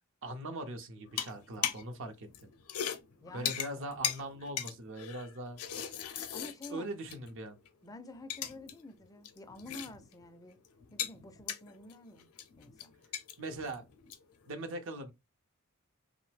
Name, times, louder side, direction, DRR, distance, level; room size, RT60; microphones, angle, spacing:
voice 1, 0.2-2.3 3.3-5.6 6.7-7.6 13.4-13.9 14.5-15.1, right 1 dB, 60° right, 0.6 m, -41 dB
sound 1, 1.1-2.0 2.2-7.4 7.7-7.8 8.1-8.8 9.0-10.2 10.5-14.4, left 9 dB, 85° left, 0.5 m, -39 dB
voice 2, 3.2-3.5 6.3-6.9 7.8-10.6 10.9-12.3 12.6-13.0, left 2 dB, 15° left, 0.3 m, -49 dB
2.9 x 2.0 x 3.1 m
head